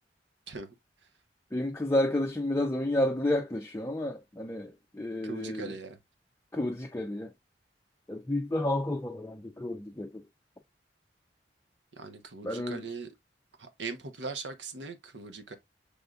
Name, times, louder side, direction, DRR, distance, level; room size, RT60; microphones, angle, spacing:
voice 1, 1.5-5.7 6.5-7.3 8.1-10.2 12.4-12.9, left 1 dB, 15° left, 0.4 m, -31 dB
voice 2, 5.2-6.0 12.0-13.1 13.6-15.5, right 4 dB, 85° right, 0.9 m, -40 dB
6.4 x 3.5 x 2.4 m
head